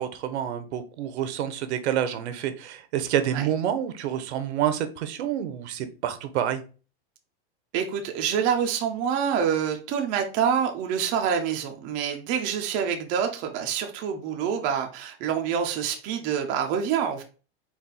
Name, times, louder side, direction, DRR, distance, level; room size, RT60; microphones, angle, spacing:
voice 1, 0.0-6.6, right 10 dB, 80° right, 10 dB, 0.7 m, -28 dB
voice 2, 7.7-17.2, right 8 dB, 25° right, 3 dB, 0.4 m, -26 dB
4.2 x 2.3 x 3.7 m, 0.35 s
supercardioid pair, 155°, 33 cm